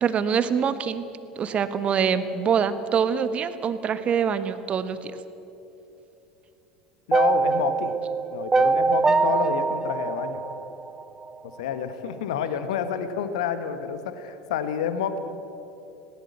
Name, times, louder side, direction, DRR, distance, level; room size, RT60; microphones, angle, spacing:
voice 1, 0.0-1.1 1.3-5.2, right 7 dB, 35° right, 12 dB, 1.4 m, -24 dB
voice 2, 7.1-7.9 8.3-10.4 11.6-15.2, left 7 dB, 65° left, 10 dB, 1.3 m, -29 dB
sound 1, 7.1-11.3, right 4 dB, 15° right, 0.6 m, -23 dB
20.0 x 18.5 x 8.2 m, 2.8 s
figure-of-eight pair, 70°, 4 cm